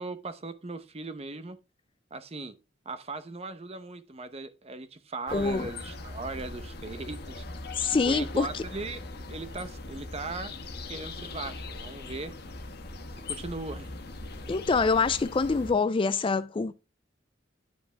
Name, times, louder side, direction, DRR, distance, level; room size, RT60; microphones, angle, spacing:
voice 1, 0.0-1.6 2.1-2.6 2.9-7.4 8.1-9.0 9.3-10.6 10.9-12.3 13.3-13.9, right 3 dB, 35° right, 0.8 m, -38 dB
sound 1, 5.3-15.7, left 3 dB, 60° left, 1.2 m, -40 dB
voice 2, 5.3-5.7 7.8-8.6 14.5-16.7, left 4 dB, 25° left, 0.3 m, -25 dB
10.0 x 5.2 x 3.4 m
head